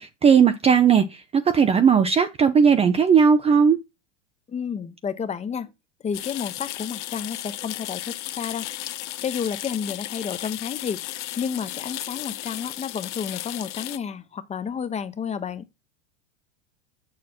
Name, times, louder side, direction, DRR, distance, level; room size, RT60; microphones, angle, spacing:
voice 1, 0.0-3.8, right 6 dB, 15° right, 0.5 m, -17 dB
voice 2, 4.5-5.7 6.0-8.7 9.2-11.0 11.3-15.7, left 7 dB, 20° left, 0.9 m, -31 dB
sound 1, 6.1-14.0, left 15 dB, 75° left, 0.8 m, -34 dB
7.3 x 6.6 x 4.3 m
hypercardioid pair, 110°, 36 cm